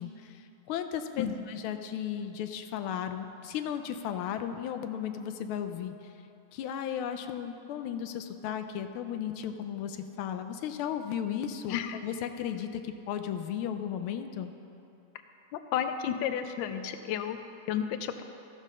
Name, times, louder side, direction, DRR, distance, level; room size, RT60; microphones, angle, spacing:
voice 1, 0.0-5.9 6.5-14.5, left 9 dB, 90° left, 8 dB, 1.5 m, -35 dB
voice 2, 15.5-17.4 17.7-18.2, left 9 dB, 75° left, 8 dB, 1.2 m, -32 dB
14.0 x 5.4 x 6.1 m, 2.8 s
omnidirectional pair, 2.3 m